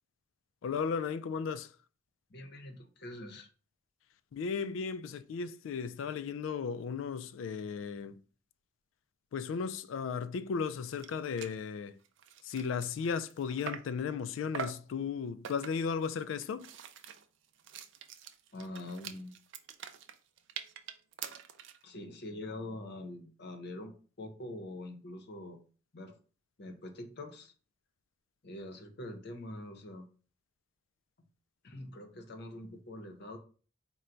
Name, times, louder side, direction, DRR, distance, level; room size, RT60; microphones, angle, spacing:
voice 1, 0.6-1.7 4.3-8.2 9.3-12.0 12.4-16.7, left 6 dB, 80° left, 0.3 m, -35 dB
voice 2, 2.3-3.5 18.5-19.3 21.8-25.6 25.9-26.2 26.6-27.5 28.4-30.0 31.6-33.4, left 1 dB, 55° left, 0.7 m, -44 dB
sound 1, 10.7-10.8 11.0-11.1 11.4-11.6 12.0-14.0 14.5-14.9 15.4-15.9 16.4-21.8, right 7 dB, 70° right, 0.4 m, -44 dB
4.4 x 2.2 x 3.8 m
head